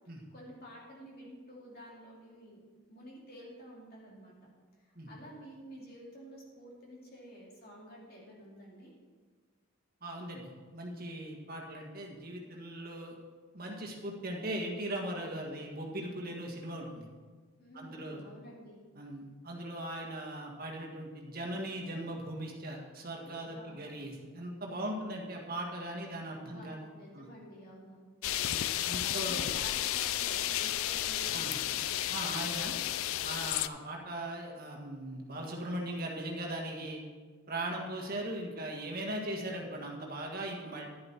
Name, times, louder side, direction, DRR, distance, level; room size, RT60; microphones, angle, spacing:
voice 1, 0.3-2.6 2.9-4.5 4.8-8.9 17.6-18.8 23.4-23.8 24.7-25.2 26.3-28.0 28.3-28.7 28.9-31.8, equal, 40° left, -4 dB, 2.8 m, -50 dB
voice 2, 10.0-13.1 13.5-17.1 17.7-18.2 18.9-26.9 27.1-27.2 28.4-28.6 28.8-29.5 31.3-31.6 32.1-32.7 33.2-37.0 37.5-40.9, right 1 dB, 40° right, 0 dB, 1.7 m, -39 dB
sound 1, 28.2-33.7, left 12 dB, 70° left, 0.4 m, -32 dB
11.0 x 10.5 x 4.4 m, 1.5 s
head